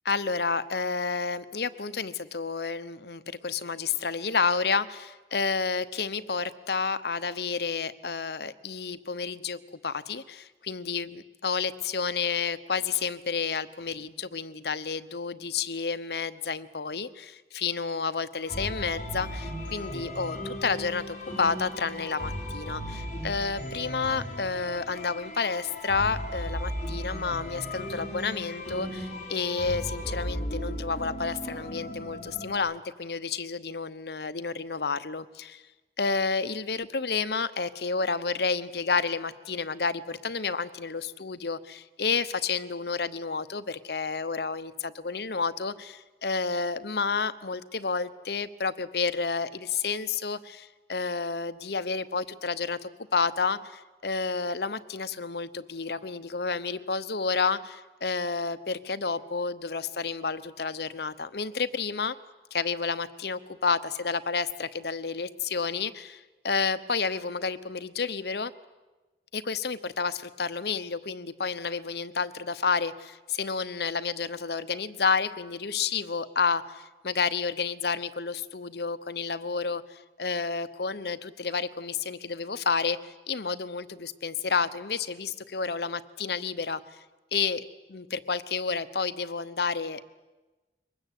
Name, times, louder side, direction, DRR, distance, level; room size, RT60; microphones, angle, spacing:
voice 1, 0.0-35.6 36.0-62.1 62.5-68.5 69.3-86.8 87.3-90.1, left 5 dB, 65° left, 13 dB, 0.9 m, -30 dB
sound 1, 18.4-32.6, equal, 45° left, 6.2 m, -36 dB
23.5 x 20.0 x 8.3 m, 1.2 s
head